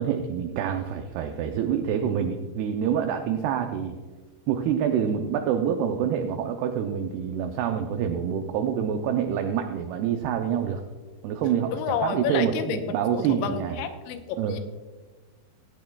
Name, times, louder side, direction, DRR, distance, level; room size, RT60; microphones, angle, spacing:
voice 1, 0.0-4.0 4.5-10.8 11.2-13.8 14.4-14.6, right 8 dB, 80° right, 5 dB, 2.3 m, -26 dB
voice 2, 11.7-12.8 13.1-14.6, left 7 dB, 85° left, 7 dB, 3.1 m, -30 dB
16.5 x 12.5 x 2.3 m, 1.3 s
omnidirectional pair, 5.2 m